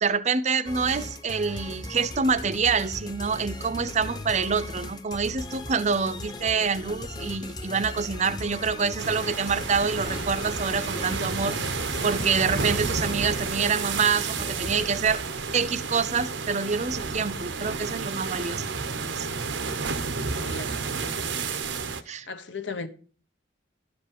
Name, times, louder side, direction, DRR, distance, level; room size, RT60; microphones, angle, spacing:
voice 1, 0.0-11.8 12.0-15.2 15.5-18.7 19.1-19.3 22.1-22.3, right 5 dB, 40° right, 0.6 m, -26 dB
sound 1, 0.7-15.0, left 1 dB, 20° left, 0.8 m, -38 dB
sound 2, 9.0-22.0, right 4 dB, 85° right, 0.9 m, -31 dB
voice 2, 20.4-21.5 22.3-22.9, left 4 dB, 85° left, 1.1 m, -37 dB
12.5 x 5.2 x 7.2 m
head